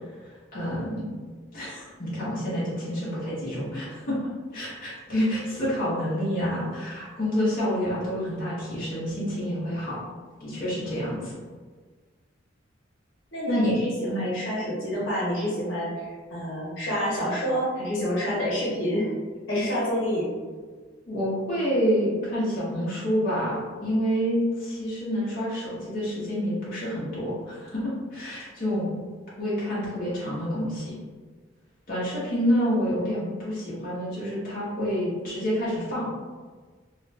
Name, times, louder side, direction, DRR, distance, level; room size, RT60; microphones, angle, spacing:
voice 1, 0.2-1.1 1.5-4.2 4.5-10.0 10.4-11.4 13.5-13.8 14.1-14.3 21.1-28.9 29.4-31.0 31.9-36.1, equal, 50° left, -9 dB, 0.9 m, -28 dB
voice 2, 13.3-19.1 19.5-20.3, equal, 75° left, -7 dB, 1.0 m, -28 dB
2.4 x 2.3 x 3.2 m, 1.5 s
head